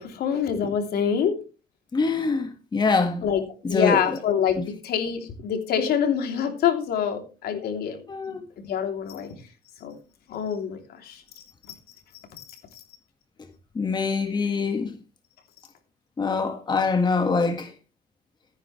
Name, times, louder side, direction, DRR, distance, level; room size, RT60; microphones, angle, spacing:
voice 1, 0.0-1.3 3.2-3.4 3.7-8.0 8.6-9.3 9.8-9.9 10.3-10.8 11.1-11.2, left 8 dB, 70° left, 3.0 m, -25 dB
voice 2, 1.9-3.2 3.6-4.2 4.6-4.7 8.1-8.4 13.7-14.9 16.2-17.7, left 4 dB, 25° left, 1.6 m, -24 dB
14.5 x 10.0 x 3.2 m
cardioid pair, 110°, 17 cm